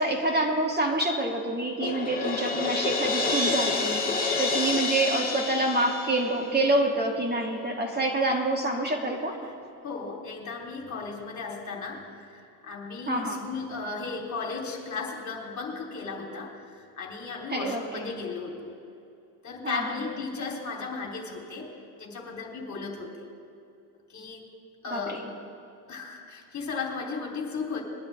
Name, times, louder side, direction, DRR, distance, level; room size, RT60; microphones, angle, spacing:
voice 1, 0.0-4.0 4.4-9.4 13.1-13.5 17.5-18.1 19.6-19.9 24.9-25.2, right 2 dB, 20° right, 1 dB, 2.5 m, -27 dB
Crash cymbal, 1.8-6.8, left 3 dB, 15° left, 2.3 m, -28 dB
voice 2, 9.8-18.8 19.4-23.3 24.1-24.4 24.8-25.3 25.9-27.8, left 4 dB, 35° left, 0 dB, 3.5 m, -36 dB
22.0 x 11.5 x 3.5 m, 2.5 s
supercardioid pair, 85°, 50 cm